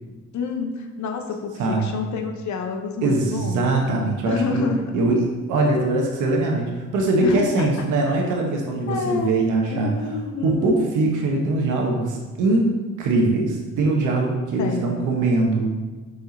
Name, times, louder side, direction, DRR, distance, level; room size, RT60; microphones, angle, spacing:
voice 1, 0.3-3.6 4.2-4.9 7.2-7.7 8.9-9.3 9.7-10.9 14.6-15.0, left 5 dB, 70° left, 4 dB, 0.9 m, -28 dB
voice 2, 3.0-4.6 4.9-9.9 10.4-12.7 13.0-15.7, right 2 dB, 85° right, 0 dB, 1.1 m, -22 dB
5.1 x 4.9 x 4.0 m, 1.3 s
cardioid pair, 90°, 30 cm